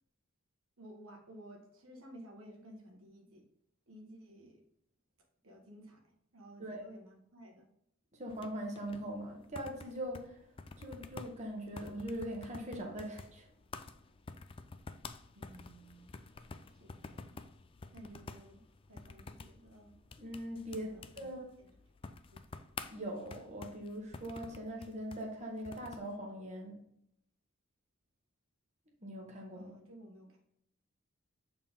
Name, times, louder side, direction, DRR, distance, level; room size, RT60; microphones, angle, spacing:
voice 1, 0.8-3.4 3.9-4.6 5.4-7.7 15.3-16.1 16.7-17.4 17.9-18.6 18.9-20.0 20.8-21.3 21.6-21.7 22.0-22.4 29.5-30.4, right 1 dB, 90° right, 1 dB, 1.5 m, -55 dB
voice 2, 8.1-10.5 10.8-13.5 20.2-21.5 22.9-26.8 29.0-29.7, equal, 35° right, 0 dB, 1.2 m, -41 dB
sound 1, 8.3-26.1, left 4 dB, 25° left, 0.3 m, -50 dB
7.4 x 4.4 x 3.6 m, 0.72 s
head